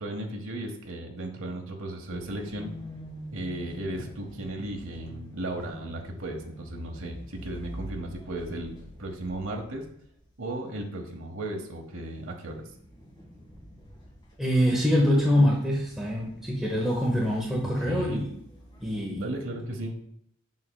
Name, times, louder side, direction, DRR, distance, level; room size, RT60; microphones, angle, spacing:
voice 1, 0.0-2.7 3.3-9.9 10.4-12.6 17.6-18.3 19.1-20.0, right 1 dB, 65° right, 2 dB, 0.9 m, -35 dB
sound 1, 2.1-10.3 10.7-10.9 11.5-12.2 12.4-19.0, equal, 20° left, 1.8 m, -46 dB
voice 2, 14.4-18.3 18.8-19.3, equal, ahead, -4 dB, 0.8 m, -24 dB
7.3 x 6.0 x 2.3 m, 0.68 s
head